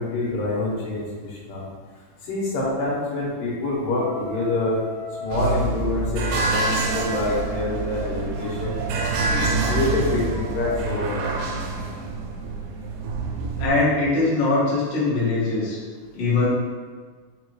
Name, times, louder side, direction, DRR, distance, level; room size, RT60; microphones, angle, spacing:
voice 1, 0.0-1.7 2.2-4.8 5.2-8.8 9.3-11.3, left 2 dB, 85° left, -5 dB, 2.6 m, -26 dB
sound 1, 3.9-5.7 6.4-10.8, left 2 dB, 65° right, 1.9 m, -38 dB
sound 2, 5.3-13.7, right 3 dB, 90° right, 2.3 m, -26 dB
voice 2, 13.6-15.8 16.1-16.5, left 3 dB, 55° left, -9 dB, 1.3 m, -21 dB
5.5 x 2.3 x 3.0 m, 1.5 s
omnidirectional pair, 3.8 m